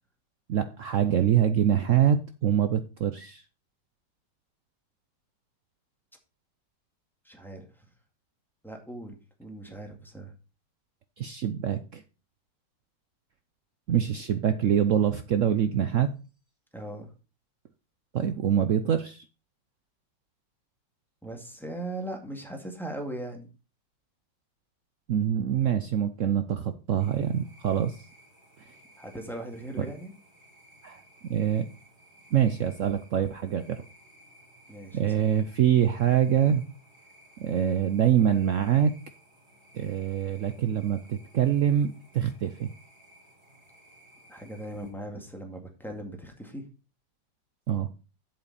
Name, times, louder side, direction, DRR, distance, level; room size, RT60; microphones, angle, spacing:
voice 1, 0.5-3.4 11.2-12.0 13.9-16.1 18.1-19.3 25.1-28.0 29.8-29.9 30.8-31.0 31.3-31.7 32.3-33.8 34.9-36.6 37.4-38.9 39.7-42.7 47.7-47.9, right 9 dB, 70° right, 10 dB, 0.7 m, -25 dB
voice 2, 7.3-7.7 8.6-10.3 16.7-17.1 21.2-23.5 29.0-30.1 34.7-35.2 44.3-46.6, right 1 dB, ahead, 2 dB, 1.9 m, -39 dB
sound 1, 27.0-44.9, right 1 dB, 30° right, 3.8 m, -57 dB
7.8 x 7.8 x 4.1 m, 0.33 s
omnidirectional pair, 2.0 m